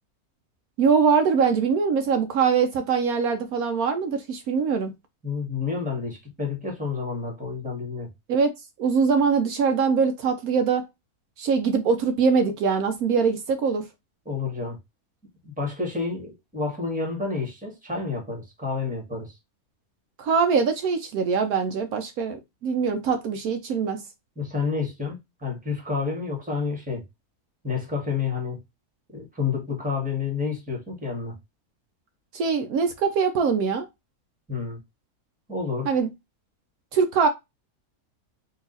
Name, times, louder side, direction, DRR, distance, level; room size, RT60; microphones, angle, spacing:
voice 1, 0.8-4.9 8.3-8.5 8.8-10.8 11.4-13.8 20.2-24.0 32.3-33.9 35.8-36.1 36.9-37.3, right 5 dB, 75° right, 1.1 m, -22 dB
voice 2, 5.2-8.1 14.2-14.8 15.4-19.3 24.3-27.0 27.6-28.6 29.1-31.3 34.5-34.8 35.5-35.9, left 4 dB, 5° right, 1.5 m, -29 dB
4.0 x 2.8 x 3.9 m
omnidirectional pair, 1.6 m